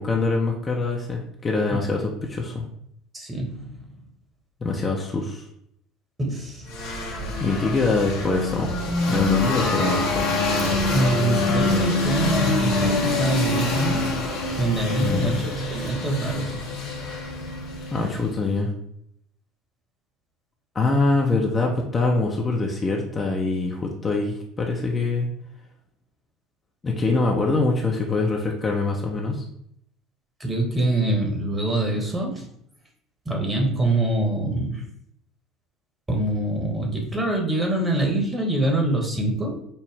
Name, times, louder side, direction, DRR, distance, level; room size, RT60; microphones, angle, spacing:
voice 1, 0.0-2.6 4.6-5.4 7.4-8.7 9.1-10.3 15.0-15.4 17.9-18.7 20.7-25.3 26.8-29.4, left 3 dB, 25° left, -1 dB, 0.7 m, -24 dB
voice 2, 3.1-3.7 6.2-6.7 10.6-14.2 14.6-16.6 30.4-32.5 33.2-34.9 36.1-39.6, right 1 dB, 15° right, 0 dB, 1.2 m, -25 dB
sound 1, 6.7-18.4, left 2 dB, 60° left, 0.9 m, -25 dB
5.5 x 2.1 x 3.3 m, 0.72 s
figure-of-eight pair, 65°, 0 cm